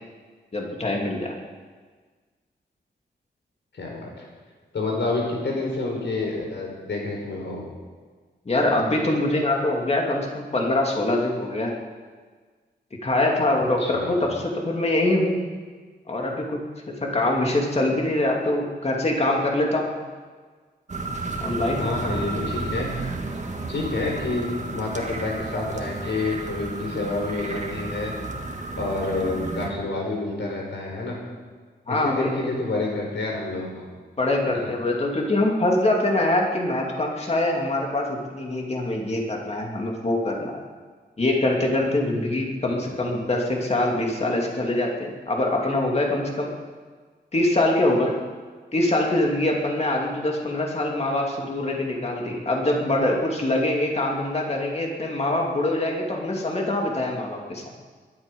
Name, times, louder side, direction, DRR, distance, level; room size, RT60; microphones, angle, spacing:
voice 1, 0.5-1.3 8.5-11.7 13.0-15.4 16.1-16.6 16.9-19.9 21.4-21.8 31.9-32.3 34.2-40.6 41.2-46.5 47.3-48.1 48.7-57.7, left 1 dB, 35° left, 0 dB, 2.6 m, -24 dB
voice 2, 3.7-4.3 4.7-7.6 13.8-14.1 21.8-22.9 23.7-28.1 28.8-31.2 31.9-33.8 34.5-34.6 42.7-42.8, left 2 dB, 80° left, -1 dB, 4.9 m, -28 dB
sound 1, 20.9-29.7, right 3 dB, 40° right, 1.8 m, -32 dB
22.0 x 12.0 x 5.4 m, 1.5 s
wide cardioid pair, 155°, 18 cm